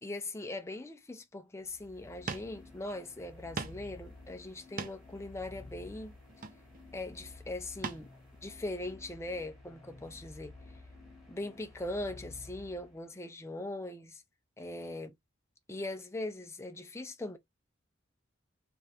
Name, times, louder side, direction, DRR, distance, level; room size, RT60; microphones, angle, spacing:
voice 1, 0.0-6.1 6.9-8.1 8.4-10.5 11.3-14.2 14.6-15.1 15.7-17.4, left 2 dB, 15° left, 0.5 m, -40 dB
sound 1, 1.6-13.3, left 2 dB, ahead, 1.9 m, -52 dB
sound 2, 2.0-2.1 2.3-2.5 2.9-3.0 3.6-3.9 4.5-5.2 6.3-6.9 7.8-8.1 8.5-8.6, right 5 dB, 45° right, 0.5 m, -40 dB
3.5 x 3.1 x 2.8 m
head